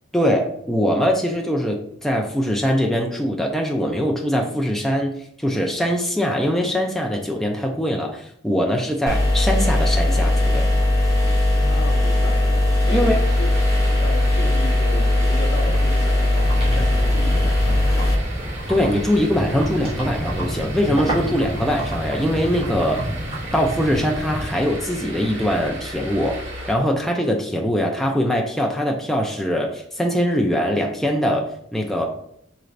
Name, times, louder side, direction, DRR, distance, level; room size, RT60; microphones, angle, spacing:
voice 1, 0.1-10.6 12.9-13.2 18.7-23.1 23.5-32.1, equal, ahead, 0.3 m, -22 dB
sound 1, 9.1-18.1, left 1 dB, 15° left, 0.8 m, -19 dB
voice 2, 11.6-13.6 14.0-18.3, left 2 dB, 65° left, 0.7 m, -34 dB
sound 2, 12.9-26.7, right 1 dB, 70° right, 1.6 m, -35 dB
sound 3, 16.4-24.5, equal, 30° right, 1.5 m, -29 dB
4.9 x 3.2 x 2.5 m
head